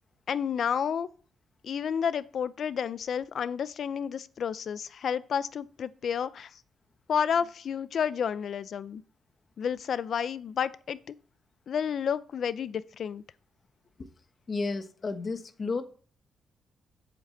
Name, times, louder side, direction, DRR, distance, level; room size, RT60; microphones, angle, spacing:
voice 1, 0.3-1.1 1.6-6.5 7.1-9.0 9.6-11.1 11.7-13.2, left 7 dB, 55° left, 0.6 m, -30 dB
voice 2, 14.5-15.8, left 3 dB, 35° left, 1.2 m, -32 dB
8.5 x 7.1 x 7.8 m
cardioid pair, 135°, 0 cm